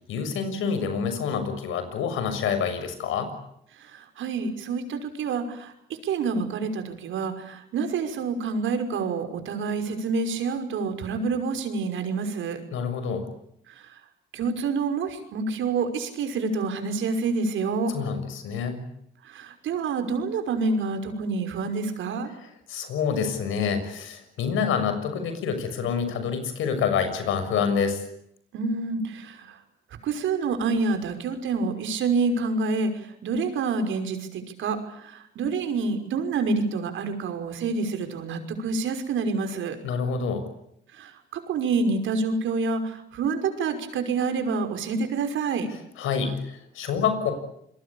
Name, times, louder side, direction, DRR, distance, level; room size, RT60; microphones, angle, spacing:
voice 1, 0.1-3.3 12.7-13.3 17.9-18.8 22.4-28.0 39.8-40.4 46.0-47.3, left 6 dB, 85° left, 9 dB, 6.8 m, -27 dB
voice 2, 3.8-12.6 13.7-13.9 14.3-18.0 19.2-22.3 28.5-29.6 30.0-39.8 40.9-45.7, right 4 dB, 80° right, 7 dB, 5.8 m, -28 dB
28.0 x 22.5 x 8.8 m, 0.74 s
cardioid pair, 90°, 20 cm